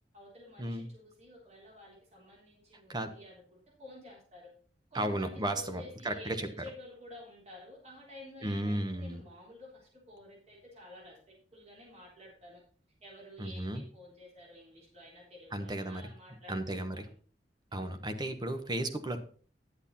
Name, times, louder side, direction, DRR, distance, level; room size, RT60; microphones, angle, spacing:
voice 1, 0.1-4.5 4.9-12.6 13.0-17.1 17.7-18.1, left 1 dB, 40° right, -2 dB, 3.7 m, -51 dB
voice 2, 4.9-6.5 8.4-9.2 13.4-13.8 15.5-16.0 16.5-17.1 17.7-19.2, right 1 dB, 25° right, 8 dB, 1.0 m, -34 dB
10.0 x 8.1 x 4.1 m, 0.43 s
head